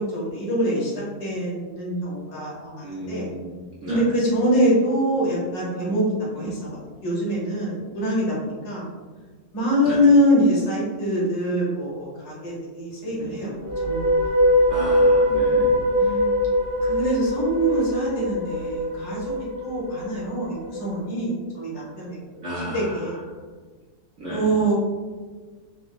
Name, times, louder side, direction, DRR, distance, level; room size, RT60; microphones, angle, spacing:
voice 1, 0.0-3.3 3.9-8.8 9.5-13.5 13.8-14.0 16.0-16.4 16.8-19.4 19.6-23.2 24.3-24.7, equal, 85° left, -6 dB, 1.8 m, -24 dB
voice 2, 2.8-3.5 3.8-4.0 6.4-6.5 9.8-10.0 13.0-13.4 14.7-15.7 22.4-23.1 24.2-24.6, right 1 dB, 65° right, -8 dB, 0.7 m, -33 dB
sound 1, 13.5-20.8, left 1 dB, 60° left, 0.7 m, -22 dB
4.1 x 2.0 x 2.4 m, 1.4 s
omnidirectional pair, 1.9 m